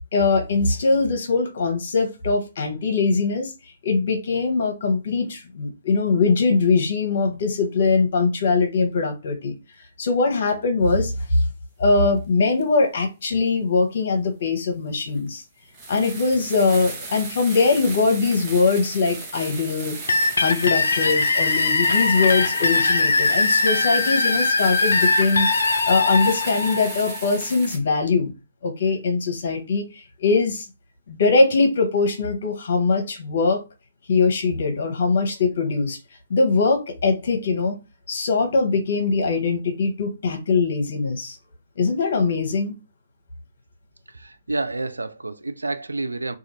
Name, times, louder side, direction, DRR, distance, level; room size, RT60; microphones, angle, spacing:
voice 1, 0.1-3.5 3.8-9.5 10.0-11.4 11.8-15.4 15.9-20.0 20.4-25.5 25.9-28.3 28.6-30.7 31.1-33.6 34.1-36.0 36.3-37.8 38.1-41.4 41.8-42.7, left 4 dB, 60° left, 1.0 m, -21 dB
sound 1, 12.6-12.7 14.5-14.6 15.2-15.3 15.7-27.8, right 3 dB, 25° right, 0.9 m, -36 dB
sound 2, 20.1-27.7, left 3 dB, 75° left, 0.4 m, -21 dB
voice 2, 44.1-46.4, right 2 dB, 90° right, 0.4 m, -29 dB
2.5 x 2.4 x 3.1 m
figure-of-eight pair, 135°, 0 cm